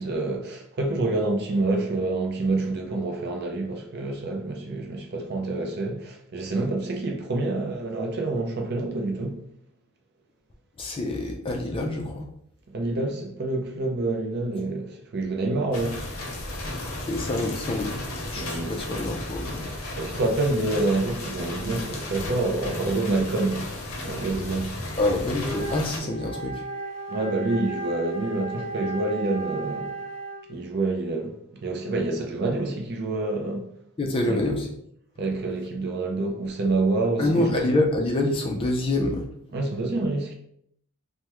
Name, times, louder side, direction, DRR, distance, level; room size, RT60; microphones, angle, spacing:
voice 1, 0.0-9.4 12.7-16.0 18.3-19.1 19.9-23.7 24.0-24.8 26.0-26.1 27.1-30.0 30.5-33.7 34.2-34.4 35.2-37.5 39.5-40.3, right 2 dB, 50° right, 0.5 m, -27 dB
voice 2, 10.8-12.3 17.0-19.7 25.0-26.6 34.0-34.7 37.2-39.3, left 2 dB, 25° left, 0.4 m, -26 dB
sound 1, 15.7-26.0, left 1 dB, 70° left, 0.6 m, -34 dB
Wind instrument woodwind instrument, 25.4-30.6, right 2 dB, 45° left, 0.8 m, -35 dB
3.4 x 2.1 x 2.9 m
head